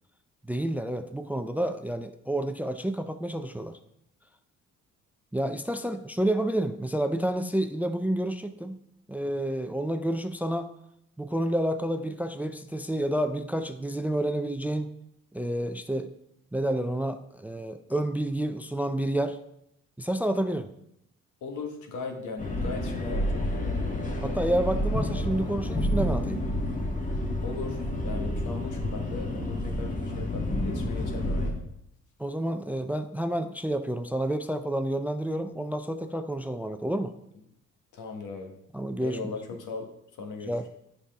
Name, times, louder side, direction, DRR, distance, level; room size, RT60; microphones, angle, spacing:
voice 1, 0.5-3.8 5.3-8.8 9.1-10.7 11.2-14.9 15.3-16.1 16.5-19.4 20.0-20.7 24.2-26.4 32.2-37.1 38.7-39.2 40.4-40.6, right 1 dB, 5° right, 9 dB, 0.4 m, -29 dB
voice 2, 21.4-24.0 27.4-31.7 37.9-38.5 39.0-39.9 40.2-40.7, left 4 dB, 80° left, 3 dB, 1.4 m, -38 dB
sound 1, 22.4-31.5, left 1 dB, 25° left, 1.5 m, -29 dB
8.3 x 5.5 x 3.4 m, 0.77 s
cardioid pair, 90°, 30 cm